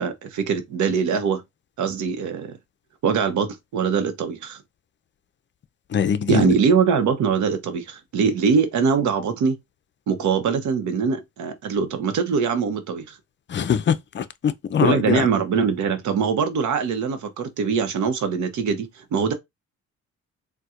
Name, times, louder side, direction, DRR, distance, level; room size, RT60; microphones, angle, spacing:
voice 1, 0.0-1.4 1.8-2.6 3.0-4.6 6.3-9.6 10.1-13.2 14.8-19.3, right 6 dB, 70° right, 0.8 m, -22 dB
voice 2, 5.9-6.5 13.5-15.3, left 7 dB, 40° left, 0.5 m, -22 dB
4.2 x 2.2 x 2.4 m
cardioid pair, 90°, 30 cm